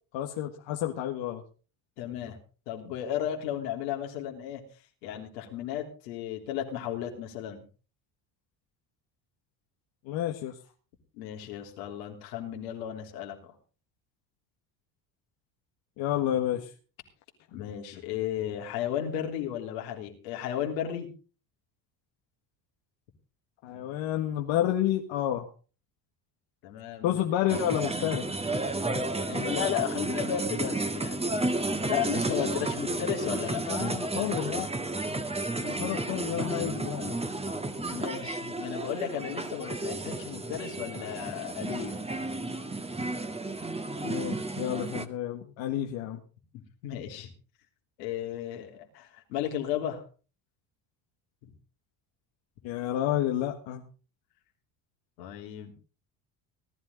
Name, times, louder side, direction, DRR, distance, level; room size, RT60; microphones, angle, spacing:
voice 1, 0.1-1.4 10.1-10.6 16.0-16.7 23.6-25.5 27.0-28.2 33.7-34.7 35.6-37.2 44.0-46.2 52.6-53.8, left 12 dB, 70° left, 3 dB, 1.8 m, -30 dB
voice 2, 2.0-2.4 2.7-4.6 5.0-7.6 11.2-13.5 17.5-21.1 26.6-27.2 29.3-31.2 31.8-33.6 37.9-42.0 46.8-47.3 48.0-50.0 51.4-51.5 55.2-55.7, left 10 dB, 85° left, 2 dB, 3.4 m, -34 dB
sound 1, 27.5-45.1, right 2 dB, 10° right, 1.7 m, -32 dB
18.5 x 12.0 x 4.0 m, 0.36 s
supercardioid pair, 75°, 48 cm